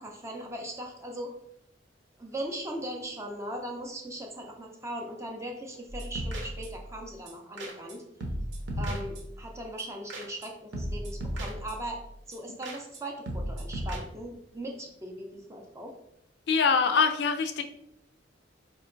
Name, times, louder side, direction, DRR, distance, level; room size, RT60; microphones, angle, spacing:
voice 1, 0.0-1.3 2.2-8.0 8.8-12.0 12.3-15.9, right 1 dB, 15° right, 1 dB, 0.4 m, -39 dB
sound 1, 5.9-6.9 7.3-7.4 7.6-7.9 8.2-9.4 9.8-9.9 10.1-10.5 10.7-12.0 12.3-12.4 12.6-13.0 13.3-14.0, right 1 dB, 65° right, 0.8 m, -35 dB
voice 2, 16.5-17.6, left 5 dB, 60° left, 7 dB, 0.4 m, -24 dB
4.3 x 2.8 x 2.5 m, 0.77 s
head